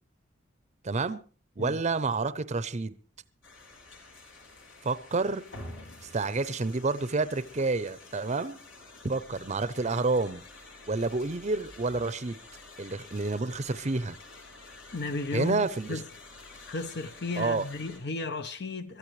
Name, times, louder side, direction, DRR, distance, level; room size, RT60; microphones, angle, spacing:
voice 1, 0.8-1.2 1.6-2.9 4.8-5.4 6.1-8.6 9.0-10.4 10.9-12.4 12.8-14.2 15.3-16.0 17.4-17.6, right 3 dB, 35° right, 0.7 m, -29 dB
sound 1, 3.4-18.0, left 2 dB, 75° left, 3.9 m, -49 dB
voice 2, 14.9-16.0 16.6-19.0, left 3 dB, 60° left, 0.9 m, -34 dB
22.5 x 13.5 x 3.2 m
head